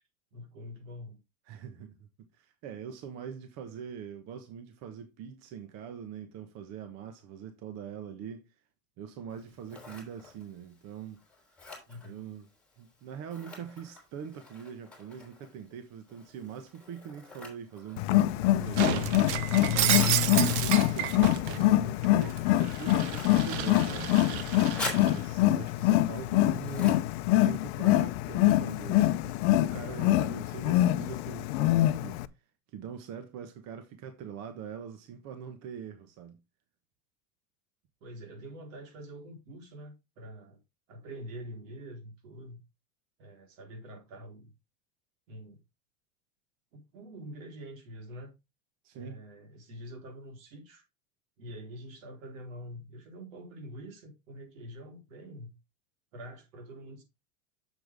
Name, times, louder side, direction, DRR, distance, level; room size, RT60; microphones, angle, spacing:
voice 1, 0.3-1.2 11.9-12.3 19.0-19.5 38.0-40.6 40.9-42.6 43.2-44.5 45.3-45.6 46.7-48.3 48.9-50.8 51.4-55.6 56.1-57.0, equal, 85° right, 4.0 m, -45 dB
voice 2, 1.5-8.5 9.0-11.2 12.0-12.5 12.8-19.1 19.5-24.1 25.0-27.0 27.4-32.2 32.7-36.4 48.8-49.2, right 8 dB, 45° right, 1.2 m, -43 dB
Scissors, 9.3-28.1, left 2 dB, 5° left, 3.6 m, -47 dB
Wild animals, 18.0-32.3, left 15 dB, 55° left, 0.6 m, -25 dB
Shatter, 18.7-21.6 22.0-25.2, right 11 dB, 60° right, 1.0 m, -31 dB
7.8 x 7.2 x 3.5 m
supercardioid pair, 150°, 38 cm